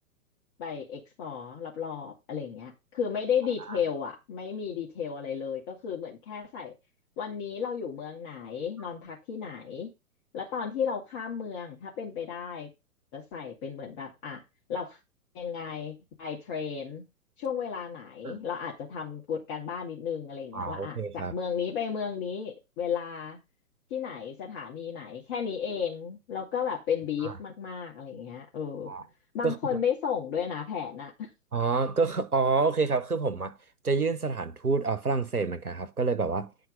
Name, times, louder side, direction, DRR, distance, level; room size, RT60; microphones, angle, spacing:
voice 1, 0.6-6.7 7.2-9.9 10.3-12.7 13.1-14.4 14.7-15.0 15.3-17.0 17.4-23.4 23.9-28.9 29.3-31.3, left 7 dB, 35° left, 2.3 m, -34 dB
voice 2, 20.5-21.3 27.2-27.4 28.9-29.0 29.4-29.6 31.5-33.6 33.8-36.5, right 4 dB, 90° right, 1.3 m, -28 dB
9.8 x 4.6 x 5.2 m
figure-of-eight pair, 115°, 43 cm